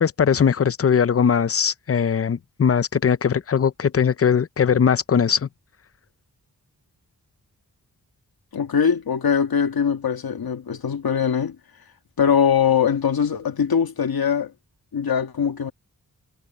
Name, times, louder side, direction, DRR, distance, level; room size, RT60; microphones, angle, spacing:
voice 1, 0.0-5.5, left 7 dB, 40° left, 0.6 m, -20 dB
voice 2, 8.5-11.6 12.2-14.5 14.9-15.7, left 7 dB, 85° left, 1.9 m, -21 dB
wide cardioid pair, 95°, 36 cm